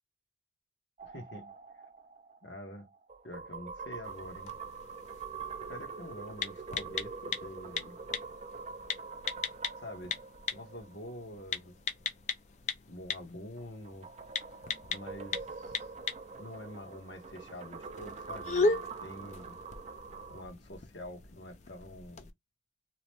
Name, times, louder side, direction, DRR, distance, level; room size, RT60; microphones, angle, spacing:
voice 1, 1.0-1.5 2.4-2.9 3.2-4.5 5.7-8.2 9.8-10.1 10.5-11.7 12.9-14.1 14.9-15.9 16.4-19.6 20.3-22.3, left 1 dB, 70° left, 1.1 m, -46 dB
sound 1, 1.0-11.6 13.6-20.5, right 5 dB, 35° right, 0.4 m, -45 dB
sound 2, 4.0-22.3, left 4 dB, 35° left, 0.4 m, -38 dB
2.8 x 2.1 x 3.0 m
head